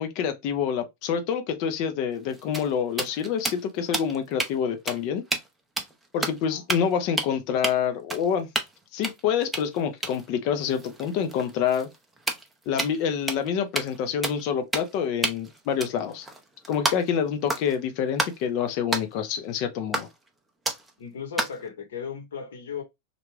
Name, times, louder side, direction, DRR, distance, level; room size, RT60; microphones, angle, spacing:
voice 1, 0.0-5.2 6.1-8.5 8.9-11.9 12.7-16.3 16.7-20.1, left 8 dB, 45° left, 0.7 m, -27 dB
sound 1, 2.1-4.5 4.9-5.0 5.3-5.5 5.8-6.4 6.7-6.9 7.2-7.3 7.6-7.7 8.1-8.8 9.0-13.0 13.3-13.5 13.7-14.0 14.2-14.4 14.7-15.0 15.2-17.2 17.5-17.8 18.2-18.4 18.9-19.0 19.9-20.3 20.6-20.9 21.4-21.6, right 2 dB, 5° right, 0.6 m, -30 dB
voice 2, 21.0-22.8, left 6 dB, 60° left, 1.1 m, -36 dB
3.3 x 2.5 x 3.2 m
figure-of-eight pair, 90°, 0 cm